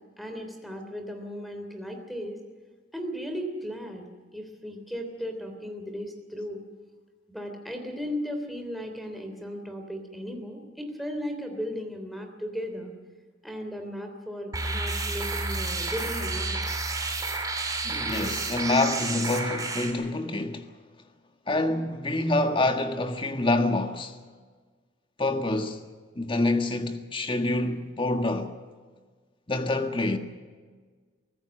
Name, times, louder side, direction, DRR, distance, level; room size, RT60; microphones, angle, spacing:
voice 1, 0.2-2.4 2.9-4.1 4.3-6.6 7.3-12.9 13.4-16.6, equal, ahead, 3.2 m, -36 dB
sound 1, 14.5-19.9, right 3 dB, 20° right, 3.0 m, -30 dB
voice 2, 17.8-20.7 21.5-24.2 25.2-25.8 26.1-28.6 29.5-30.2, left 2 dB, 30° left, 1.7 m, -26 dB
24.0 x 15.5 x 7.8 m
head